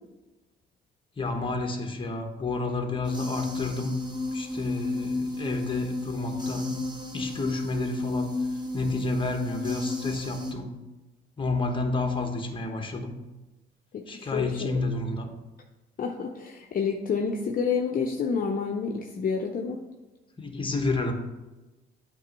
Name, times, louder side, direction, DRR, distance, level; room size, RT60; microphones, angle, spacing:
voice 1, 1.2-4.0 4.3-6.9 7.1-8.3 8.7-10.8 11.4-13.2 14.1-15.3 20.4-21.1, left 3 dB, 25° left, 4 dB, 1.1 m, -30 dB
sound 1, 3.0-10.5, left 2 dB, 20° right, 1.1 m, -32 dB
voice 2, 13.9-14.7 16.0-19.8, left 5 dB, 45° left, 1 dB, 0.6 m, -29 dB
8.2 x 3.0 x 5.2 m, 1.1 s
cardioid pair, 90°, 20 cm